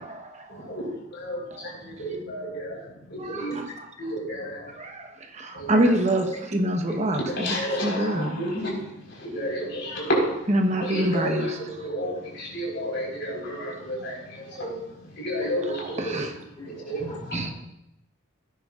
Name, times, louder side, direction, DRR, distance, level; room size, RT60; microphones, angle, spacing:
voice 1, 0.6-1.4 1.8-2.7 3.1-3.5 4.0-4.6 5.5-5.8 6.9-8.8 9.2-10.3 10.8-14.7 15.2-16.2 16.7-17.1, equal, 60° left, -3 dB, 4.4 m, -31 dB
voice 2, 3.2-3.7 4.8-5.1 5.4-8.4 10.5-11.6 15.7-16.3 17.3-17.5, right 1 dB, 35° right, 4 dB, 1.1 m, -26 dB
voice 3, 16.6-17.5, right 2 dB, 20° left, -4 dB, 3.6 m, -36 dB
18.0 x 9.8 x 2.5 m, 0.84 s
head